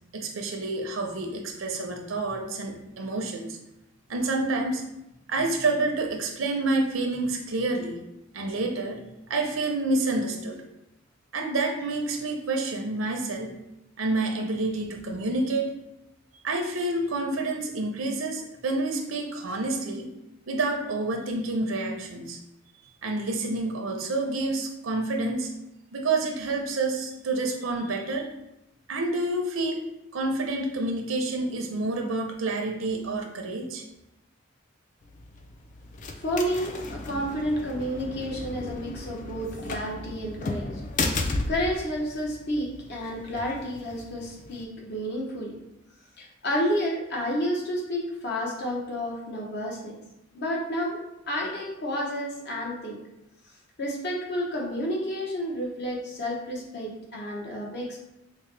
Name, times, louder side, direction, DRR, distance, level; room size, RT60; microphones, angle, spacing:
voice 1, 0.1-3.6 4.1-4.8 5.3-8.0 8.3-9.0 9.3-10.6 11.3-13.5 14.0-15.7 16.4-20.1 20.5-22.4 23.0-25.5 25.9-28.3 28.9-29.9 30.1-33.8, right 2 dB, 75° right, 2 dB, 0.6 m, -28 dB
sound 1, 35.0-44.6, left 2 dB, 40° left, 0.4 m, -35 dB
voice 2, 36.2-40.7 41.0-45.5 46.2-49.9 50.3-51.0 51.3-53.0 53.8-58.0, equal, 55° left, -2 dB, 0.8 m, -30 dB
4.6 x 2.1 x 3.2 m, 0.88 s
head